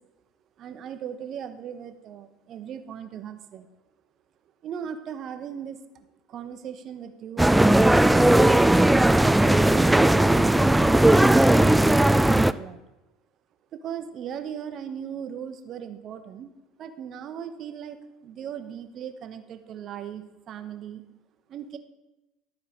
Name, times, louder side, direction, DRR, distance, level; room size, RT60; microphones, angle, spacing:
voice 1, 0.6-3.7 4.6-8.7 9.3-12.8 13.7-16.5 16.8-21.0 21.5-21.8, right 8 dB, 50° right, 8 dB, 0.9 m, -38 dB
sound 1, 7.4-12.5, right 1 dB, 5° right, 0.3 m, -17 dB
12.5 x 4.7 x 4.9 m, 0.99 s
hypercardioid pair, 70°, 0 cm